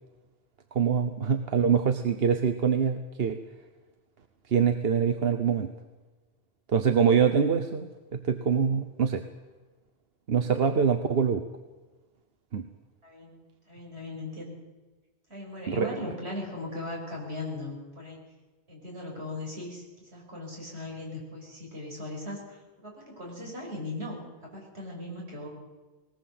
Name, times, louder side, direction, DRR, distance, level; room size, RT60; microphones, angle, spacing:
voice 1, 0.7-3.4 4.5-5.7 6.7-9.2 10.3-11.4 12.5-12.7 15.7-15.9, right 6 dB, 65° right, 8 dB, 1.2 m, -24 dB
voice 2, 13.0-14.6 15.3-18.2 18.7-25.5, left 2 dB, 80° right, -1 dB, 6.4 m, -38 dB
21.0 x 18.5 x 7.8 m, 1.2 s
omnidirectional pair, 1.1 m